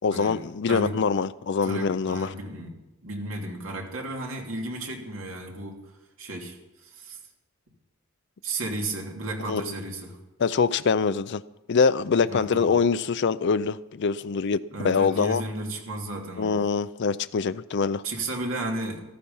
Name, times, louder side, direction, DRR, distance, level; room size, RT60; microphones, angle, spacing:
voice 1, 0.0-2.3 9.5-9.7 10.4-11.4 11.7-15.4 16.4-18.0, left 5 dB, 55° left, 0.5 m, -24 dB
voice 2, 1.6-5.8 6.2-7.2 8.4-10.2 12.3-12.7 14.7-16.6 18.0-19.0, right 2 dB, 70° right, 2.8 m, -33 dB
14.5 x 14.0 x 5.5 m
head